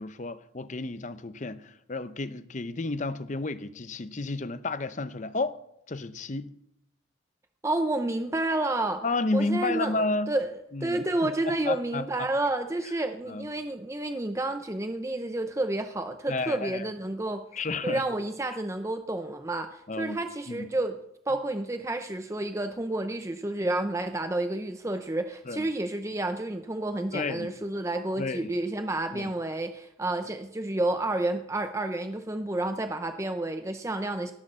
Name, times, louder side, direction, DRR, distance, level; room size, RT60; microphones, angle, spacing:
voice 1, 0.0-5.6 5.9-6.5 9.0-10.3 10.7-12.1 13.3-13.5 16.3-16.9 17.5-18.0 19.9-20.2 20.5-20.7 25.5-25.7 27.1-27.5 28.2-28.5 29.1-29.3, left 3 dB, 40° left, 0.7 m, -31 dB
voice 2, 7.6-9.0 9.3-17.4 17.8-21.0 21.3-34.3, right 2 dB, 15° right, 0.6 m, -30 dB
18.0 x 6.5 x 7.4 m
head